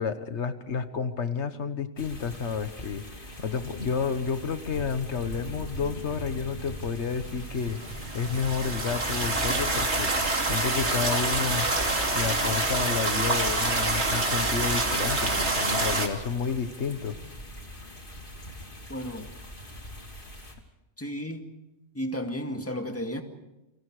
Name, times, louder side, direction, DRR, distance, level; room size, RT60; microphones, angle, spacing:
voice 1, 0.0-7.8 8.1-11.7 12.1-17.2, left 6 dB, 90° left, 10 dB, 1.6 m, -31 dB
sound 1, 2.0-20.5, equal, 50° left, 3.1 m, -42 dB
sound 2, 7.7-16.1, right 2 dB, 80° right, 3.2 m, -26 dB
voice 2, 18.9-19.3 21.0-21.5 21.9-23.2, equal, 10° left, 5 dB, 2.0 m, -33 dB
30.0 x 24.0 x 4.9 m, 0.99 s
omnidirectional pair, 1.1 m